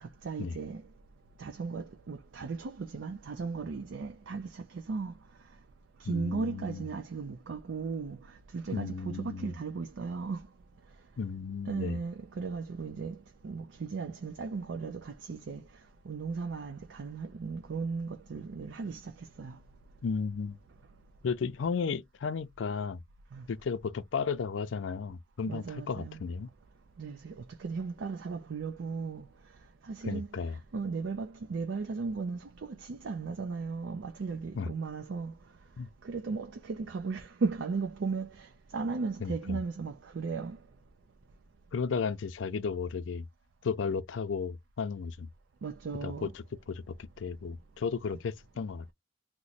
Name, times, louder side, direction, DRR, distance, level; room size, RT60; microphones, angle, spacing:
voice 1, 0.0-0.8 1.4-5.1 6.0-10.4 11.7-15.6 16.1-19.6 23.3-23.5 25.5-26.2 27.0-29.3 29.8-30.4 30.7-35.3 36.0-40.6 45.6-46.3, right 4 dB, 75° right, 0.5 m, -36 dB
voice 2, 6.1-6.8 8.7-9.5 11.2-12.0 20.0-20.6 21.2-23.0 23.5-26.5 30.1-30.6 34.5-34.7 35.8-35.9 39.2-39.6 41.7-43.3 43.6-45.3 46.0-48.9, left 5 dB, 85° left, 0.4 m, -34 dB
2.9 x 2.1 x 3.9 m
head